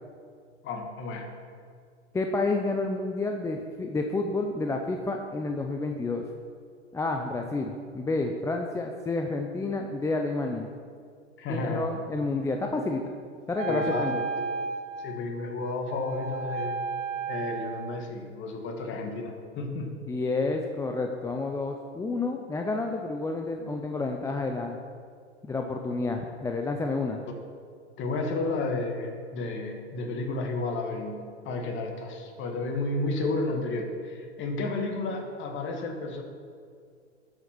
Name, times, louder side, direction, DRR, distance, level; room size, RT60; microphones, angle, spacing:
voice 1, 0.6-1.3 11.4-11.9 13.7-14.1 15.0-16.8 17.3-19.9 28.0-36.2, left 2 dB, 30° left, 3 dB, 2.1 m, -32 dB
voice 2, 2.1-6.2 6.9-10.7 11.5-13.0 13.5-14.2 20.1-24.8 25.4-27.2, left 3 dB, 10° left, 3 dB, 0.6 m, -30 dB
Wind instrument woodwind instrument, 13.5-18.1, right 4 dB, 80° right, 0.9 m, -34 dB
12.5 x 7.8 x 6.1 m, 2.1 s
hypercardioid pair, 100°, 36 cm